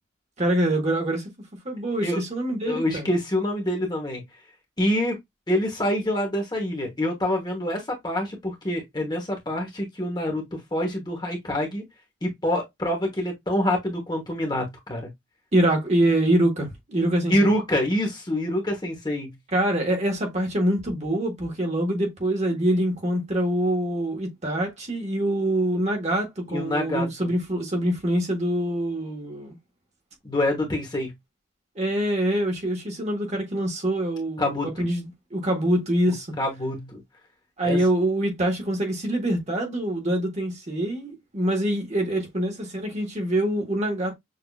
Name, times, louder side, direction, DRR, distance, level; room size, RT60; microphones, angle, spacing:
voice 1, 0.4-1.3 1.6-3.1 15.5-17.5 19.5-29.6 31.7-36.3 37.6-44.2, right 1 dB, 35° right, 1.5 m, -25 dB
voice 2, 2.6-4.2 4.8-5.2 5.5-11.8 12.2-15.1 17.3-19.3 26.5-27.3 30.2-31.1 34.4-34.7 36.4-37.0 37.6-37.8, left 1 dB, 20° left, 1.2 m, -26 dB
6.6 x 2.8 x 2.4 m
head